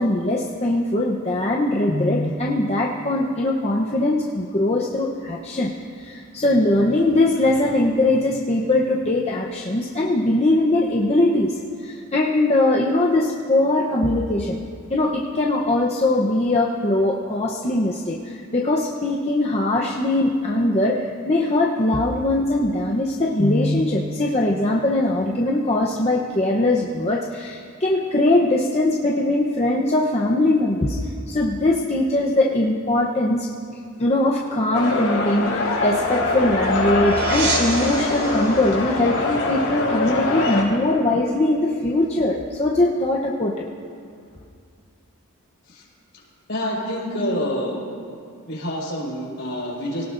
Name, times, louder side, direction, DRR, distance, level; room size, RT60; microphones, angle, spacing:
voice 1, 0.0-5.7 6.0-11.5 11.8-14.6 14.9-31.0 31.3-33.5 34.0-43.7, left 1 dB, 30° left, -2 dB, 0.8 m, -21 dB
sound 1, 34.7-40.6, left 2 dB, 80° left, 4.1 m, -23 dB
sound 2, 35.5-40.8, right 2 dB, 50° right, 2.7 m, -31 dB
voice 2, 46.5-47.8 48.5-50.0, equal, 55° left, -5 dB, 5.0 m, -27 dB
24.0 x 18.0 x 2.6 m, 2.3 s
head